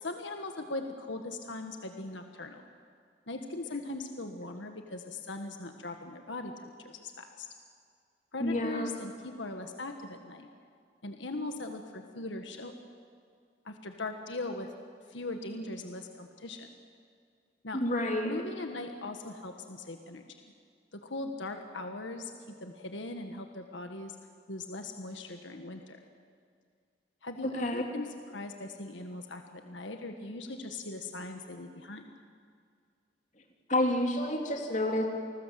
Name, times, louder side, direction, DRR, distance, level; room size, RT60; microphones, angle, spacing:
voice 1, 0.0-2.6 3.3-7.5 8.3-10.5 11.0-12.7 13.6-14.7 15.1-16.7 17.6-17.8 18.2-20.3 20.9-22.3 22.6-24.2 24.5-26.0 27.2-32.1, left 2 dB, 85° left, 5 dB, 1.6 m, -40 dB
voice 2, 8.4-8.9 17.7-18.3 27.4-27.8 33.7-35.0, left 1 dB, 40° left, 1 dB, 3.3 m, -29 dB
29.0 x 20.0 x 7.7 m, 2.2 s
head